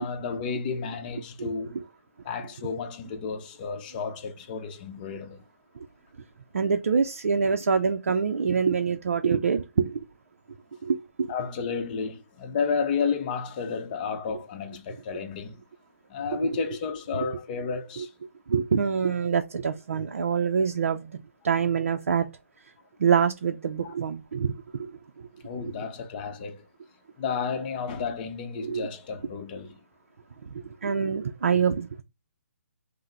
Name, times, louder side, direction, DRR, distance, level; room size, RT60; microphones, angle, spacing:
voice 1, 0.0-1.8 2.2-5.4 11.3-15.6 16.1-18.1 23.8-23.9 25.4-26.7 27.2-29.8, left 5 dB, 35° left, 0.7 m, -32 dB
voice 2, 6.5-10.0 10.8-11.3 16.4-16.5 18.0-18.1 18.5-22.3 23.0-24.9 28.6-28.9 30.5-32.0, right 6 dB, 65° right, 0.4 m, -25 dB
5.5 x 2.0 x 3.2 m
figure-of-eight pair, 140°, 8 cm